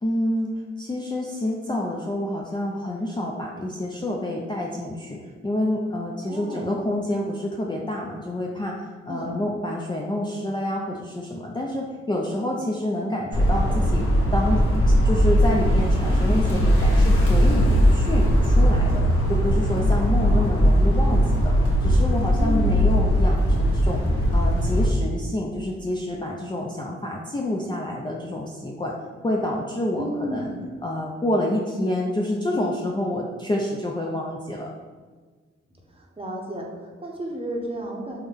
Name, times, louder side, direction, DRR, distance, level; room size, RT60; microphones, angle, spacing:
voice 1, 0.0-0.5 0.8-5.2 5.4-14.1 14.3-14.6 15.0-19.0 19.3-24.0 24.3-28.9 29.2-30.5 30.8-34.7, left 1 dB, 15° left, -2 dB, 0.4 m, -28 dB
voice 2, 6.2-6.8 9.1-9.3 20.0-20.5 22.4-22.7 30.0-30.7 35.7-38.2, right 1 dB, 20° right, -1 dB, 0.8 m, -33 dB
sound 1, 13.3-24.9, equal, 50° left, 1.1 m, -19 dB
3.4 x 2.1 x 3.4 m, 1.5 s
supercardioid pair, 45°, 29 cm